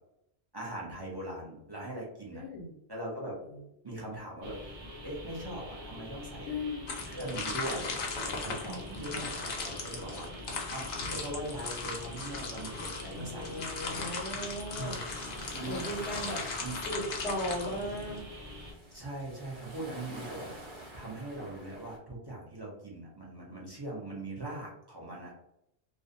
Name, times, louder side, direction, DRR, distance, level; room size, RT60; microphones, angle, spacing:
voice 1, 0.5-2.4 2.9-3.4 3.8-4.8 5.0-6.6 7.1-7.9 8.2-10.3 10.7-13.6 13.9-14.1 14.8-15.0 15.5-15.8 16.5-16.8 18.9-20.5 20.9-25.3, right 1 dB, 30° right, -4 dB, 0.4 m, -40 dB
voice 2, 2.3-2.7 3.5-3.6 6.4-7.0 8.6-9.2 13.1-15.2 15.6-16.4 16.8-18.3, left 1 dB, 80° left, -4 dB, 0.9 m, -37 dB
sound 1, 4.4-18.7, equal, 90° right, 1.0 m, -46 dB
sound 2, 6.9-18.2, left 4 dB, 60° left, 0.7 m, -38 dB
sound 3, 12.6-22.0, right 1 dB, 65° right, 1.0 m, -50 dB
2.5 x 2.0 x 2.5 m, 0.80 s
omnidirectional pair, 1.1 m